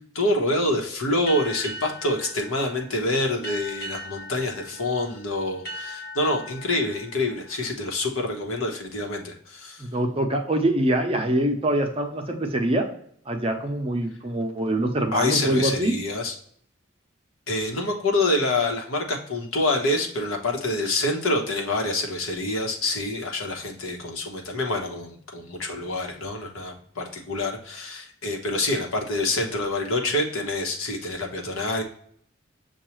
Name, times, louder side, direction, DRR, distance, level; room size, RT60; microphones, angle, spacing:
voice 1, 0.2-9.8 15.1-16.3 17.5-31.8, left 2 dB, 90° left, 1 dB, 1.0 m, -26 dB
sound 1, 1.3-8.5, equal, 45° left, 1.1 m, -40 dB
voice 2, 9.8-12.9 13.3-16.0, right 1 dB, 25° right, 3 dB, 0.6 m, -24 dB
7.0 x 2.3 x 3.0 m, 0.63 s
head